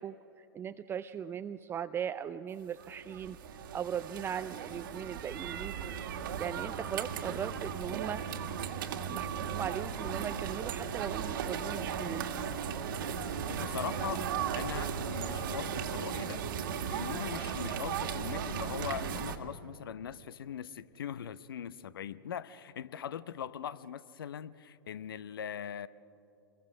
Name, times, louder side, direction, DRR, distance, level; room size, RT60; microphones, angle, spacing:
voice 1, 0.0-5.9 6.4-8.3 9.0-12.3, right 8 dB, 20° right, 0.4 m, -39 dB
sound 1, 2.8-19.4, right 7 dB, 60° right, 1.7 m, -36 dB
voice 2, 13.5-14.3 14.5-25.9, left 9 dB, 65° left, 0.7 m, -41 dB
28.0 x 21.5 x 6.3 m
figure-of-eight pair, 100°, 13 cm